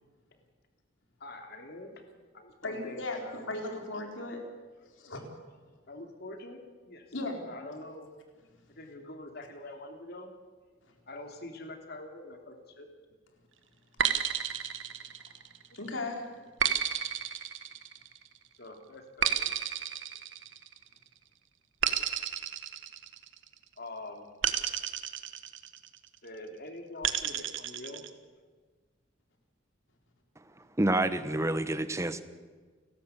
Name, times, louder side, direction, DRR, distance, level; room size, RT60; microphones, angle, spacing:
voice 1, 1.2-2.0 2.3-3.7 5.9-6.6 6.8-7.1 7.4-8.1 8.7-10.3 11.1-12.9 18.6-19.5 23.8-24.3 26.2-28.0, left 2 dB, 60° left, 4 dB, 3.1 m, -45 dB
voice 2, 2.6-4.4 5.0-5.2 7.1-7.4 15.7-16.2, left 2 dB, 75° left, 2 dB, 4.1 m, -36 dB
sound 1, 14.0-15.7 16.6-18.3 19.2-20.9 21.8-23.6 24.4-26.0 27.0-28.1, right 9 dB, 75° right, 1.5 m, -31 dB
voice 3, 30.8-32.2, right 1 dB, 15° right, 11 dB, 1.1 m, -28 dB
29.5 x 13.0 x 8.3 m, 1.4 s
head